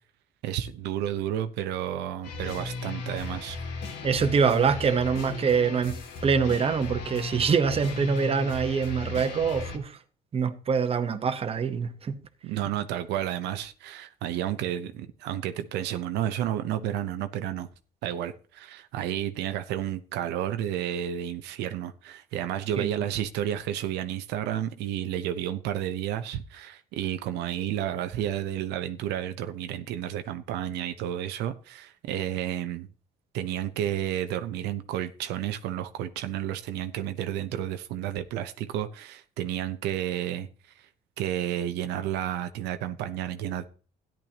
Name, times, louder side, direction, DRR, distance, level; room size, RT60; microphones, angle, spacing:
voice 1, 0.4-3.6 12.4-17.7 18.0-32.9 33.3-40.5 40.8-40.9 41.2-43.6, right 11 dB, 85° right, 0.8 m, -31 dB
sound 1, 2.2-9.8, left 3 dB, 80° left, 2.4 m, -36 dB
voice 2, 4.0-10.0 10.3-12.2 22.8-22.9, right 6 dB, 35° right, 1.1 m, -25 dB
13.5 x 10.5 x 2.9 m
cardioid pair, 110°, 17 cm